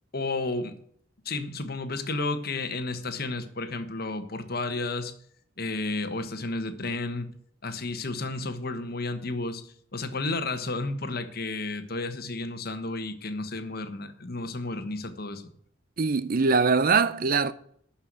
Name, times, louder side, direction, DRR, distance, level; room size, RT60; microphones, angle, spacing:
voice 1, 0.1-0.7 1.2-5.1 5.6-7.3 7.6-15.4, left 2 dB, 50° left, 1.3 m, -32 dB
voice 2, 16.0-17.5, right 4 dB, 45° right, 0.6 m, -22 dB
12.5 x 5.7 x 8.2 m
head